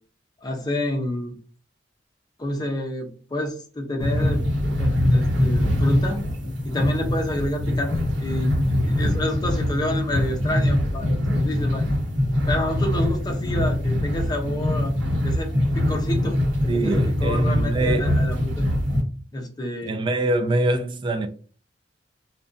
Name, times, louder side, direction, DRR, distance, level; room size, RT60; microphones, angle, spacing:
voice 1, 0.4-1.4 2.4-6.3 6.6-8.5 8.8-11.9 12.5-15.0 15.2-18.7 19.3-20.0, left 1 dB, 20° left, 0.5 m, -29 dB
sound 1, 4.0-19.0, left 1 dB, 80° right, 0.9 m, -23 dB
voice 2, 16.7-18.2 19.8-21.3, right 2 dB, 25° right, 0.3 m, -23 dB
2.5 x 2.2 x 2.4 m
head